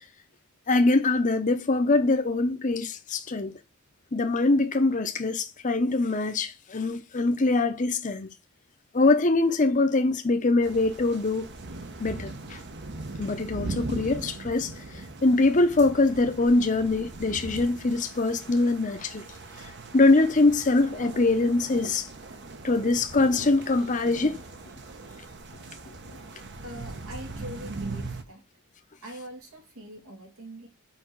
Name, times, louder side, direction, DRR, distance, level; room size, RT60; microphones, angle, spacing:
voice 1, 0.7-3.5 4.1-8.3 8.9-11.5 12.0-12.6 13.2-19.2 19.9-22.1 22.6-24.4, left 2 dB, 35° left, 0.8 m, -23 dB
sound 1, 10.6-28.2, right 2 dB, 55° right, 1.1 m, -40 dB
voice 2, 26.6-28.4 29.0-30.7, equal, 85° right, 2.9 m, -42 dB
5.9 x 4.9 x 6.3 m
head